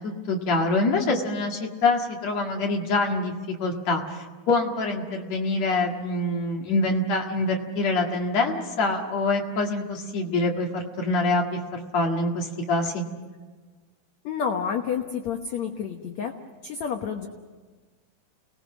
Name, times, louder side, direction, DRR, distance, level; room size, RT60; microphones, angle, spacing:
voice 1, 0.0-13.0, left 2 dB, 50° left, 1 dB, 2.6 m, -25 dB
voice 2, 14.2-16.3 16.6-17.3, left 7 dB, 80° left, 4 dB, 1.6 m, -29 dB
30.0 x 20.0 x 6.2 m, 1.4 s
omnidirectional pair, 5.0 m